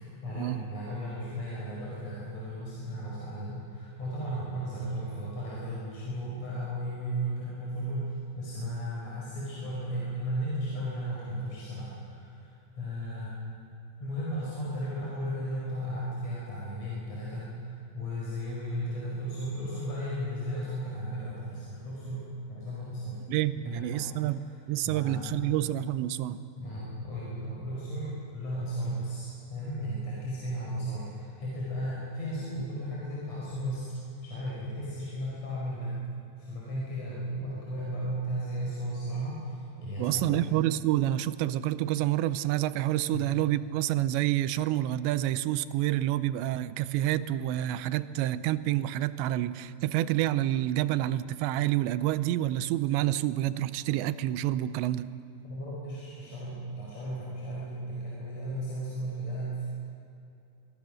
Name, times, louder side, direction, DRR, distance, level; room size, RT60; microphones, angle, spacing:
voice 1, 0.0-13.4 14.0-23.2 23.6-24.5 24.8-25.7 26.6-35.9 36.4-40.5 43.1-43.3 55.4-59.7, equal, 40° left, -6 dB, 5.9 m, -35 dB
voice 2, 23.3-24.4 24.7-26.4 40.0-55.1, right 14 dB, 85° right, 14 dB, 2.9 m, -28 dB
24.5 x 24.0 x 6.4 m, 2.7 s
omnidirectional pair, 5.1 m